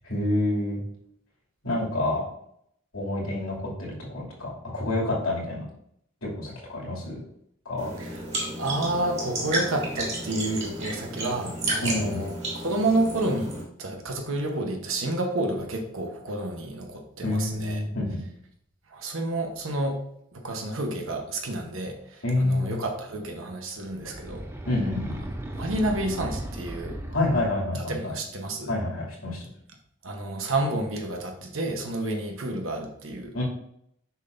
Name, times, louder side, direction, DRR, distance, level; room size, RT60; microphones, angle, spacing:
voice 1, 0.0-0.8 1.6-2.2 2.9-5.6 6.2-7.2 7.6-7.9 11.8-12.3 17.2-18.2 22.2-22.8 24.7-25.1 27.1-28.1 28.7-29.5 33.3-33.4, left 1 dB, 80° left, -4 dB, 2.6 m, -28 dB
sound 1, 7.8-13.6, right 2 dB, 30° right, 2.5 m, -32 dB
voice 2, 8.6-17.8 18.9-20.0 20.3-24.5 25.6-27.0 27.7-28.8 30.0-33.4, right 2 dB, 70° right, 2 dB, 1.0 m, -30 dB
sound 2, 23.8-27.8, right 1 dB, 10° right, 0.6 m, -36 dB
7.1 x 6.0 x 2.6 m, 0.71 s
head